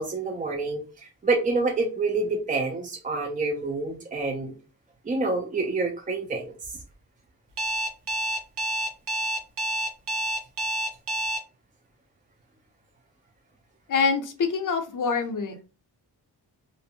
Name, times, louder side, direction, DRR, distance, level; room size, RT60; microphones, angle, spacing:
voice 1, 0.0-4.6 5.0-6.8, right 3 dB, 20° right, 1 dB, 0.3 m, -27 dB
Alarm, 7.6-11.4, equal, 70° right, 0.7 m, -28 dB
voice 2, 13.9-15.6, left 5 dB, 50° left, 5 dB, 0.6 m, -25 dB
2.5 x 2.0 x 2.7 m, 0.35 s
wide cardioid pair, 100°, 41 cm